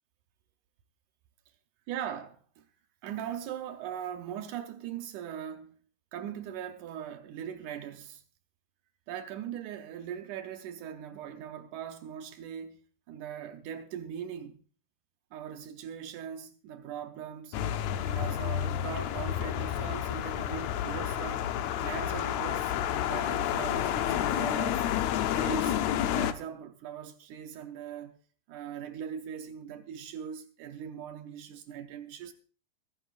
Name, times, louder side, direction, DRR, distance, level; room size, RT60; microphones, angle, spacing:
voice 1, 1.9-2.7 3.0-5.8 6.1-8.2 9.1-12.8 13.1-14.6 15.3-17.6 18.1-21.4 21.8-22.7 23.1-24.9 25.3-25.8 26.2-28.2 28.5-32.3, right 9 dB, 75° right, 2.1 m, -40 dB
sound 1, 17.5-26.3, left 11 dB, 80° left, 1.6 m, -30 dB
23.5 x 10.0 x 2.5 m
omnidirectional pair, 3.8 m